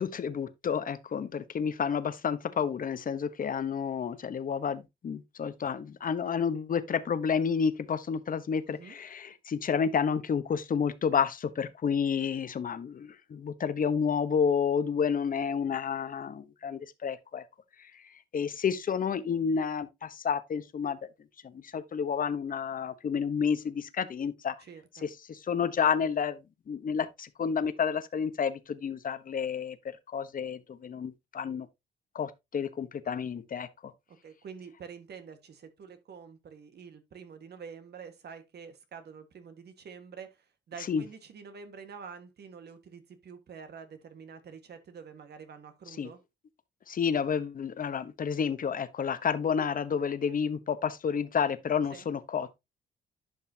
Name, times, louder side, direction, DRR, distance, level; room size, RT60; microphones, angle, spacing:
voice 1, 0.0-17.4 17.8-18.0 18.3-21.0 21.4-24.5 25.0-26.4 26.7-31.7 32.1-33.9 40.9-41.0 46.0-46.1 46.9-52.6, left 6 dB, 45° left, 1.0 m, -30 dB
voice 2, 24.6-25.0 34.1-46.2 51.9-52.0, right 6 dB, 55° right, 1.7 m, -47 dB
11.0 x 5.5 x 2.8 m
cardioid pair, 90°, 20 cm